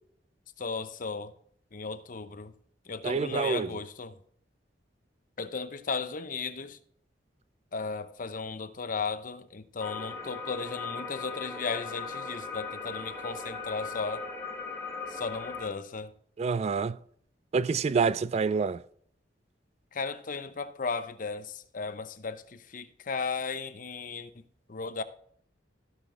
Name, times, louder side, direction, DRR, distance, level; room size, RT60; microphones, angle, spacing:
voice 1, 0.6-1.3 1.7-2.5 2.9-4.2 5.4-6.8 7.7-14.3 15.1-16.1 19.9-24.3 24.7-25.0, left 4 dB, 45° left, 0.7 m, -35 dB
voice 2, 3.0-3.7 16.4-17.0 17.5-18.8, right 5 dB, 35° right, 0.3 m, -27 dB
sound 1, 9.8-15.7, left 4 dB, 15° left, 1.4 m, -38 dB
15.0 x 6.0 x 3.8 m
head